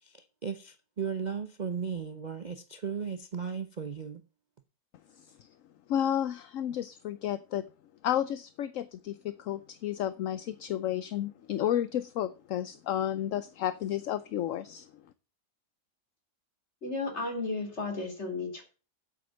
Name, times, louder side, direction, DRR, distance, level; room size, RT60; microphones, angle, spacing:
voice 1, 0.0-4.2, right 6 dB, 40° right, 0.7 m, -36 dB
voice 2, 5.9-7.6 8.0-14.9, left 11 dB, 65° left, 0.9 m, -32 dB
voice 3, 16.8-18.6, left 3 dB, 40° left, 3.2 m, -34 dB
8.1 x 7.8 x 6.8 m
omnidirectional pair, 1.7 m